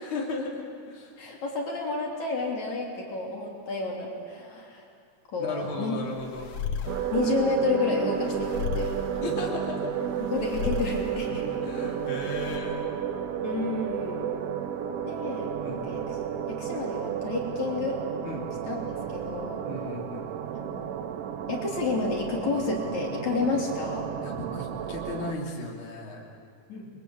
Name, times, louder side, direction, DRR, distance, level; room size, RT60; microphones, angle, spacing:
voice 1, 0.0-1.2 5.4-6.5 9.2-10.0 11.6-12.9 15.6-15.8 18.2-18.5 19.6-20.2 24.2-26.2, left 3 dB, 40° left, -2 dB, 4.0 m, -35 dB
voice 2, 1.2-4.8 5.3-5.9 7.1-9.3 10.2-11.6 13.4-14.3 15.0-16.1 16.5-18.0 18.6-19.6 20.6-21.0 21.5-24.1 26.7-26.9, left 3 dB, 65° left, -1 dB, 4.6 m, -31 dB
sound 1, 5.6-12.6, left 6 dB, 85° left, 3.2 m, -36 dB
sound 2, 6.9-25.3, right 9 dB, 60° right, 1.7 m, -32 dB
29.5 x 22.5 x 8.7 m, 2.3 s
omnidirectional pair, 3.6 m